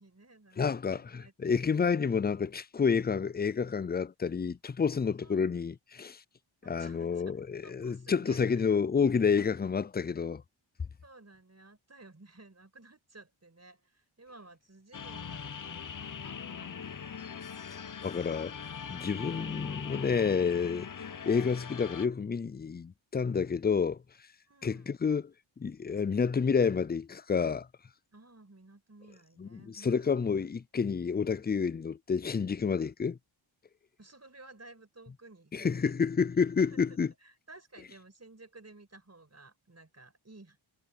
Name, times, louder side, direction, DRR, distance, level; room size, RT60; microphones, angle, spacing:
voice 1, 0.0-1.3 5.2-5.5 6.6-8.7 11.0-17.3 19.3-19.8 24.5-24.9 28.1-30.0 34.0-36.0 36.7-40.6, right 2 dB, 30° right, 5.7 m, -55 dB
voice 2, 0.6-6.2 6.7-10.4 17.7-18.6 18.9-20.9 21.3-24.0 24.6-25.2 25.6-27.7 29.4-33.2 35.5-37.1, left 6 dB, 20° left, 0.4 m, -29 dB
sound 1, 14.9-22.1, left 7 dB, 40° left, 0.9 m, -41 dB
wide cardioid pair, 75°, 49 cm